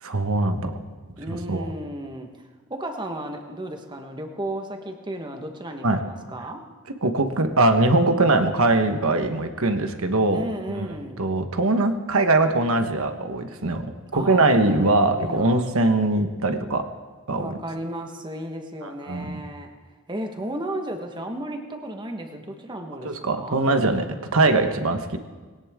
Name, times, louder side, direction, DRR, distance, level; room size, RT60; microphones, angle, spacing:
voice 1, 0.0-0.7 1.3-1.6 5.8-6.0 7.0-10.4 10.8-10.9 11.2-16.8 17.3-17.6 18.8-19.4 23.0-25.2, right 2 dB, 65° right, 7 dB, 1.3 m, -22 dB
voice 2, 1.2-2.4 2.7-6.6 10.3-11.3 14.1-14.4 15.1-15.7 17.4-19.7 20.1-23.6, right 1 dB, 20° right, 4 dB, 1.4 m, -34 dB
20.5 x 18.0 x 3.7 m, 1.4 s
head